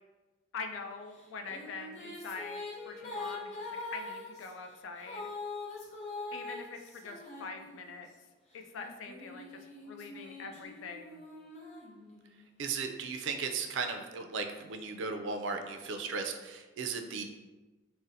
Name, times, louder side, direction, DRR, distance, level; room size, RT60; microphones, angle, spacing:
voice 1, 0.5-3.6 3.9-5.3 6.3-8.1 8.5-11.2, left 4 dB, 85° left, 5 dB, 0.3 m, -44 dB
Female singing, 1.1-8.1 8.8-12.5, left 3 dB, 35° left, 0.6 m, -43 dB
voice 2, 12.6-17.2, right 5 dB, 70° right, 5 dB, 0.3 m, -36 dB
3.9 x 2.0 x 2.6 m, 1.2 s
head